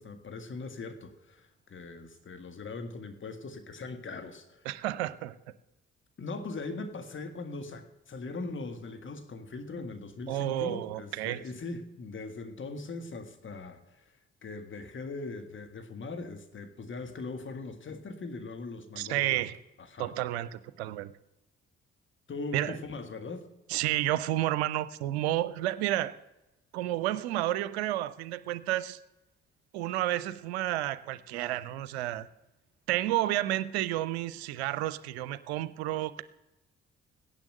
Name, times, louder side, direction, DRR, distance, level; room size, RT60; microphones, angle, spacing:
voice 1, 0.0-4.7 6.2-14.1 14.4-19.4 19.8-20.1 22.3-23.5, left 3 dB, 35° left, 7 dB, 1.9 m, -40 dB
voice 2, 4.7-5.4 10.3-11.4 19.0-19.6 20.0-21.1 22.5-22.8 23.7-26.2 26.7-29.0 29.7-32.3 32.9-36.2, right 14 dB, 75° right, 16 dB, 0.6 m, -31 dB
16.0 x 10.5 x 6.5 m, 0.93 s
figure-of-eight pair, 40°, 33 cm